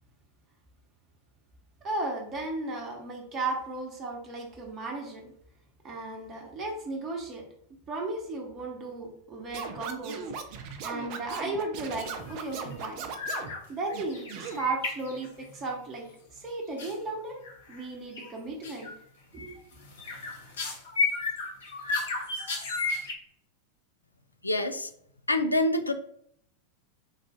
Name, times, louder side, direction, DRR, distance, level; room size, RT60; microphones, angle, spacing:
voice 1, 1.8-5.3 5.8-7.4 7.9-10.2 10.8-13.1 13.7-16.1 16.3-17.4 17.7-18.9 19.3-19.5, right 2 dB, 25° right, 0 dB, 1.0 m, -35 dB
Scratching (performance technique), 9.5-13.5 13.9-14.6, right 6 dB, 45° right, 0.5 m, -38 dB
sound 1, 12.0-12.4 12.6-12.9 13.1-13.6 13.9-15.6 16.8-16.9 17.4-17.8 18.1-18.3 18.6-19.0 19.4-23.1, left 3 dB, 65° left, 0.8 m, -33 dB
voice 2, 24.4-24.9 25.3-25.9, left 1 dB, 85° left, 8 dB, 0.4 m, -26 dB
4.0 x 2.5 x 3.5 m, 0.66 s
figure-of-eight pair, 90°, 0 cm